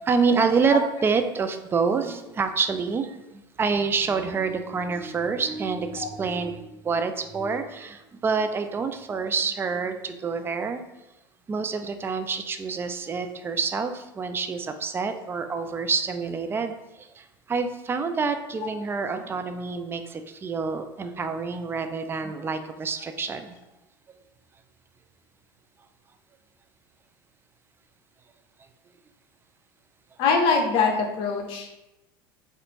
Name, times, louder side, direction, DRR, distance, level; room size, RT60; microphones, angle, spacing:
voice 1, 0.1-10.8 11.5-23.5, right 5 dB, 20° right, 8 dB, 0.3 m, -27 dB
voice 2, 30.2-31.7, left 4 dB, 45° left, 3 dB, 0.7 m, -23 dB
4.1 x 2.5 x 2.8 m, 0.95 s
figure-of-eight pair, 75°, 12 cm